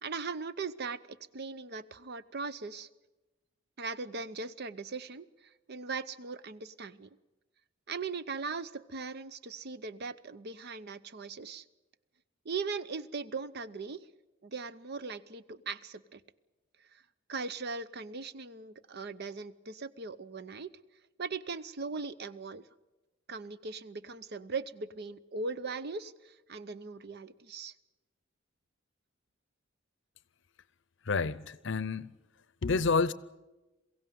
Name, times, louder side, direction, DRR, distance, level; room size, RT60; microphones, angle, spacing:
voice 1, 0.0-2.9 3.8-7.1 7.9-11.6 12.4-14.1 14.4-16.2 16.9-17.0 17.3-20.7 21.2-22.7 23.3-27.7, right 4 dB, 55° right, 0.7 m, -39 dB
voice 2, 31.1-32.1 32.6-33.1, left 4 dB, 65° left, 0.7 m, -29 dB
22.5 x 16.0 x 9.3 m
head